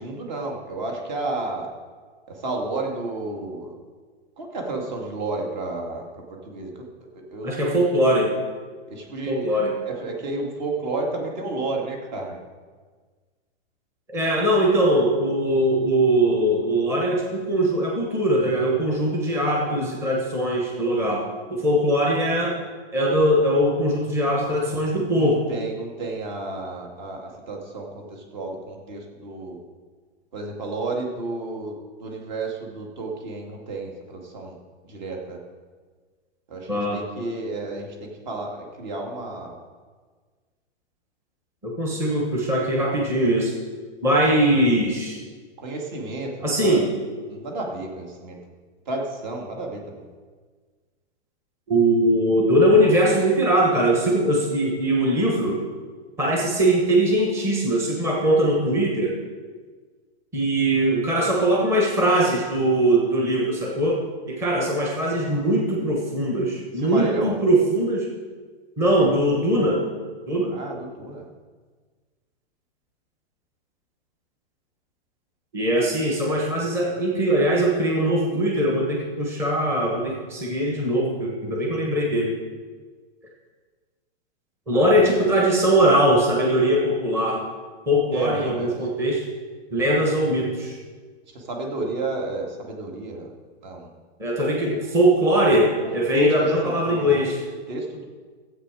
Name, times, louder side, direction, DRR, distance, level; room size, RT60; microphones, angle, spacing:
voice 1, 0.0-1.7 2.3-3.7 4.4-6.9 7.1-7.8 8.9-12.4 25.1-29.6 30.3-34.6 34.8-35.4 36.5-39.6 45.6-46.8 47.3-48.4 48.9-50.0 66.8-67.4 70.5-71.3 84.7-85.4 88.1-88.8 91.3-93.3 93.6-93.9 94.4-94.8 95.8-97.3 97.7-98.1, right 2 dB, 40° right, 1 dB, 2.5 m, -31 dB
voice 2, 7.4-8.3 9.3-9.7 14.1-22.5 22.9-25.4 36.7-37.0 41.6-43.5 44.0-45.2 46.4-46.9 51.7-55.6 56.2-59.1 60.3-64.0 64.3-68.1 68.8-69.8 70.3-70.5 75.5-82.3 84.7-87.4 87.9-89.2 89.7-90.8 94.2-97.4, right 1 dB, 10° right, -2 dB, 1.2 m, -21 dB
14.5 x 8.2 x 4.9 m, 1.5 s
hypercardioid pair, 170°, 34 cm